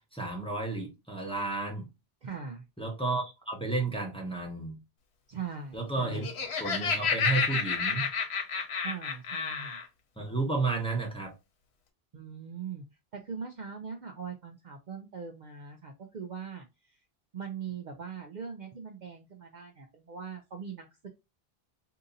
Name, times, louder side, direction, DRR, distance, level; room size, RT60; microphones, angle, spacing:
voice 1, 0.1-1.9 2.8-4.8 5.7-6.3 6.6-8.1 10.2-11.3, right 3 dB, 5° left, 0.8 m, -32 dB
voice 2, 2.2-2.6 5.3-6.3 8.8-9.8 12.1-12.8 13.1-17.0 17.3-21.1, right 6 dB, 55° right, 0.6 m, -41 dB
Laughter, 6.0-9.9, left 6 dB, 85° left, 1.1 m, -30 dB
2.8 x 2.6 x 3.8 m
omnidirectional pair, 1.1 m